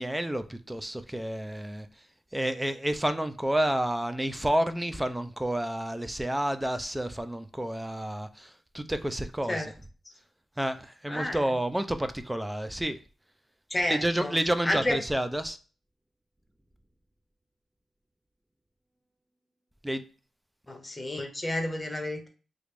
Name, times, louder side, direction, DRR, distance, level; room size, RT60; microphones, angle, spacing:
voice 1, 0.0-1.9 2.3-9.7 10.6-13.0 13.9-15.6 19.8-20.0, right 1 dB, 10° right, 0.3 m, -30 dB
voice 2, 11.1-11.4 13.7-14.4 14.6-15.0 20.7-22.3, left 1 dB, 20° left, 0.9 m, -30 dB
3.0 x 2.5 x 3.3 m
cardioid pair, 80°, 0 cm